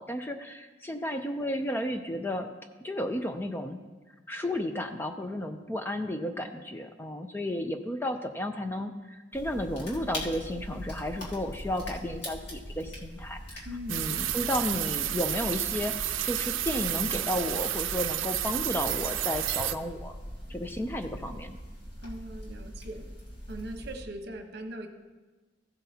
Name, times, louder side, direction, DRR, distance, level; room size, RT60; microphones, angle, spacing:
voice 1, 0.0-2.5 2.8-3.8 4.3-20.1 20.5-21.6, left 1 dB, 10° left, 6 dB, 0.4 m, -33 dB
sound 1, 9.3-24.0, equal, 60° left, 1.9 m, -42 dB
voice 2, 13.6-14.1 22.0-23.1 23.5-24.9, right 1 dB, 55° right, 5 dB, 1.0 m, -40 dB
sound 2, 13.9-19.7, right 12 dB, 85° right, 0.5 m, -31 dB
15.5 x 7.7 x 2.8 m, 1.3 s
head